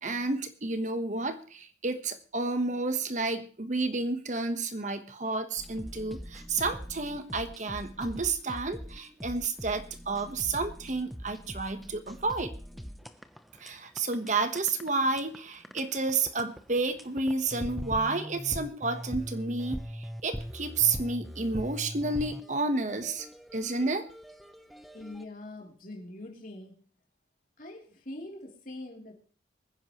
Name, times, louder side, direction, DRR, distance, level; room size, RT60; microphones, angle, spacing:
voice 1, 0.0-12.5 13.6-23.3 23.5-24.1, right 3 dB, 40° right, 9 dB, 1.2 m, -31 dB
sound 1, 5.6-25.3, equal, ahead, 0.8 m, -42 dB
voice 2, 24.9-26.8 27.6-29.2, left 1 dB, 45° left, 0 dB, 3.4 m, -43 dB
24.0 x 10.5 x 3.1 m, 0.42 s
head